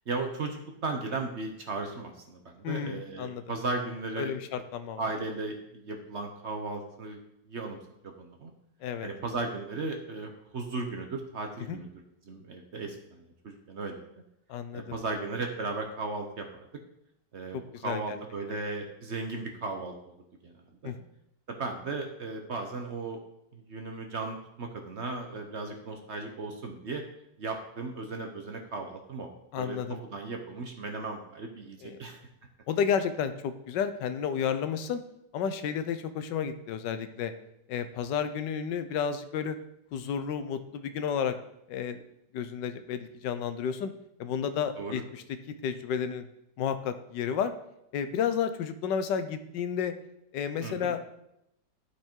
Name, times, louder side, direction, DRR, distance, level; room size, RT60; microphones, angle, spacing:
voice 1, 0.1-4.3 5.0-7.2 7.5-7.8 8.0-8.5 9.0-11.9 12.2-14.0 14.7-16.5 17.3-20.1 20.4-20.9 21.5-23.2 23.5-27.0 27.4-29.3 29.6-29.8 30.1-32.2 44.8-45.0 50.6-50.9, right 3 dB, 50° right, 3 dB, 1.0 m, -36 dB
voice 2, 2.6-3.4 4.2-5.0 8.8-9.1 11.7-11.8 14.5-15.0 17.5-18.2 20.8-21.0 29.5-30.0 31.8-32.0 32.7-35.0 35.3-37.3 37.7-39.6 39.9-41.3 41.7-42.0 42.3-43.9 44.2-45.2 45.6-46.2 46.6-47.5 47.9-49.9 50.3-51.1, left 7 dB, 85° left, 10 dB, 1.4 m, -31 dB
12.0 x 4.8 x 4.5 m, 0.80 s
omnidirectional pair, 1.9 m